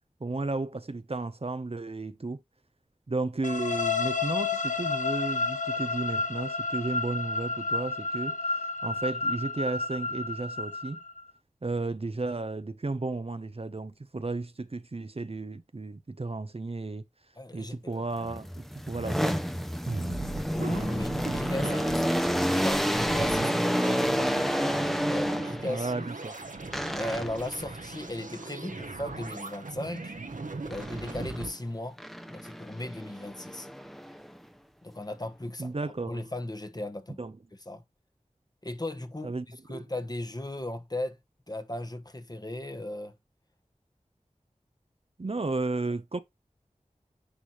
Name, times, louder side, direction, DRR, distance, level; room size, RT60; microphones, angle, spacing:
voice 1, 0.2-2.4 3.1-11.0 11.6-17.0 17.5-19.4 25.6-26.3 26.6-26.8 35.6-36.2 37.2-37.3 39.2-39.5 39.7-39.8 45.2-46.2, right 3 dB, 50° right, 0.7 m, -33 dB
sound 1, 3.4-11.2, left 4 dB, 70° left, 1.2 m, -31 dB
voice 2, 17.4-18.1 20.4-24.5 25.1-26.1 27.0-30.1 30.6-32.0 32.3-33.7 34.8-35.7 36.1-37.2 37.6-37.8 38.6-41.2 41.5-43.1, left 1 dB, 30° left, 1.3 m, -37 dB
sound 2, 18.2-25.8 26.7-27.5 30.7-31.5 32.0-34.4, equal, ahead, 0.8 m, -29 dB
sound 3, 19.9-31.5, right 3 dB, 80° right, 1.2 m, -39 dB
10.0 x 3.5 x 2.9 m
wide cardioid pair, 45°, 13 cm